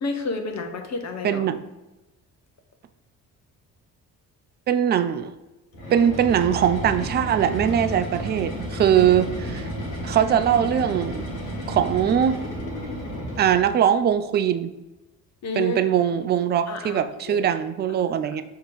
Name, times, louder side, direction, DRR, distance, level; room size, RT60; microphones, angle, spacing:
voice 1, 0.0-1.5 15.4-15.8 16.2-16.3 16.7-17.5 17.9-18.1, left 3 dB, 35° left, 5 dB, 0.9 m, -31 dB
voice 2, 1.2-1.6 4.7-5.3 5.9-9.7 10.0-11.3 11.7-12.4 13.4-14.7 15.6-18.4, right 9 dB, 25° right, 10 dB, 0.3 m, -21 dB
sound 1, 5.7-13.8, equal, 65° left, 1.6 m, -32 dB
6.5 x 2.9 x 5.3 m, 1.0 s
figure-of-eight pair, 40°, 48 cm